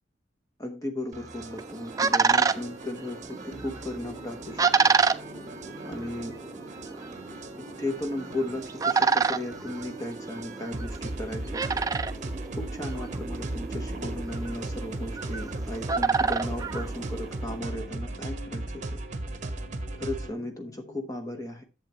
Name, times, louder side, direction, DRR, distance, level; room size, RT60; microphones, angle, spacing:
voice 1, 0.6-4.7 5.8-6.4 7.8-11.8 12.6-19.0 20.0-21.6, left 1 dB, 20° left, 4 dB, 0.9 m, -36 dB
sound 1, 1.1-20.3, right 2 dB, 40° right, 0.9 m, -38 dB
sound 2, 1.3-17.6, right 5 dB, 20° right, 0.4 m, -29 dB
sound 3, 3.3-21.1, left 1 dB, 80° left, 0.8 m, -51 dB
11.0 x 7.3 x 2.9 m, 0.29 s
head